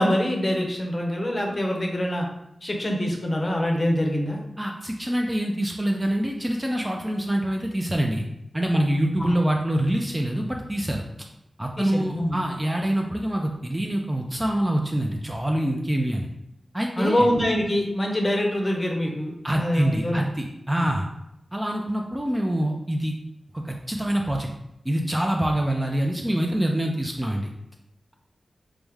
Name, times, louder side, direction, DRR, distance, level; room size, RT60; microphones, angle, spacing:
voice 1, 0.0-2.3 2.6-4.4 9.2-9.3 11.8-12.4 17.0-20.2 20.8-20.9, equal, 30° left, 0 dB, 0.7 m, -24 dB
voice 2, 4.6-8.2 8.5-11.3 11.6-16.3 16.7-17.3 19.4-21.1 21.5-23.1 23.5-24.5 24.8-27.5, right 1 dB, 15° right, 1 dB, 0.3 m, -25 dB
4.7 x 2.1 x 3.4 m, 0.83 s
wide cardioid pair, 110°, 0 cm